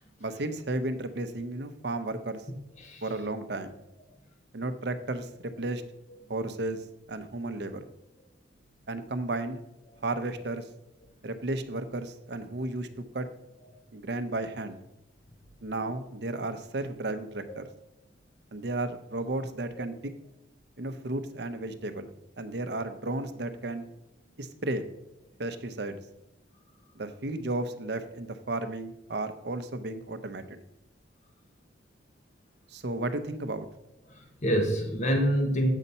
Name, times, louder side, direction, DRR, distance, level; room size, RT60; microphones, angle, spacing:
voice 1, 0.2-2.4 3.0-3.7 4.5-5.8 6.3-6.8 7.1-7.8 8.9-9.6 10.0-10.6 11.2-12.9 13.1-13.3 13.9-14.8 15.6-17.7 18.5-20.1 20.8-22.1 22.4-23.8 24.4-24.8 25.4-26.0 26.9-30.6 32.7-33.7, right 2 dB, 60° right, 9 dB, 0.7 m, -33 dB
voice 2, 34.1-35.7, equal, 35° left, 3 dB, 0.9 m, -26 dB
8.2 x 4.1 x 5.5 m, 0.86 s
head